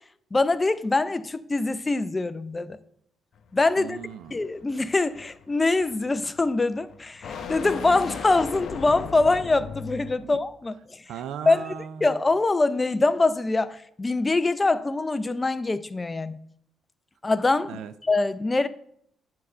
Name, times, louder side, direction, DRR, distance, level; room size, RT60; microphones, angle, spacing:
voice 1, 0.3-2.8 3.5-4.0 4.3-11.0 11.5-11.7 12.0-16.4 17.2-18.7, left 3 dB, 20° left, 0.5 m, -24 dB
sound 1, 3.4-10.4, left 6 dB, 65° left, 0.9 m, -38 dB
voice 2, 3.8-4.4 10.2-10.4 11.1-12.1 17.7-17.9, right 8 dB, 85° right, 0.5 m, -37 dB
9.7 x 3.8 x 5.5 m
cardioid pair, 90°, 0 cm